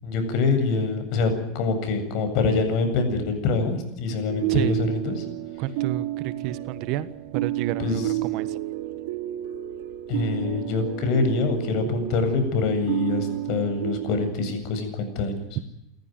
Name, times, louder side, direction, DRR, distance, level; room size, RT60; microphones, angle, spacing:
voice 1, 0.0-5.2 7.8-8.1 10.1-15.6, left 3 dB, 50° left, 7 dB, 7.9 m, -25 dB
sound 1, 4.3-14.3, right 15 dB, 75° right, 2.7 m, -31 dB
voice 2, 5.6-8.6, right 13 dB, 55° right, 15 dB, 1.4 m, -30 dB
29.5 x 14.5 x 9.3 m, 0.88 s
supercardioid pair, 140°, 0 cm